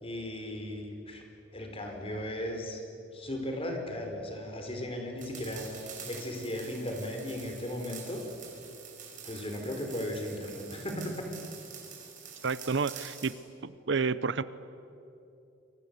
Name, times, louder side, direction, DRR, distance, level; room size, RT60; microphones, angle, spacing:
voice 1, 0.0-1.2 1.5-2.8 3.1-5.7 6.1-8.2 9.2-11.3, left 1 dB, 30° left, 3 dB, 4.5 m, -36 dB
sound 1, 5.2-13.4, right 7 dB, 45° right, 5.5 m, -47 dB
voice 2, 12.4-13.3 13.6-14.4, right 5 dB, 70° right, 16 dB, 0.8 m, -30 dB
29.0 x 23.0 x 8.2 m, 2.7 s
head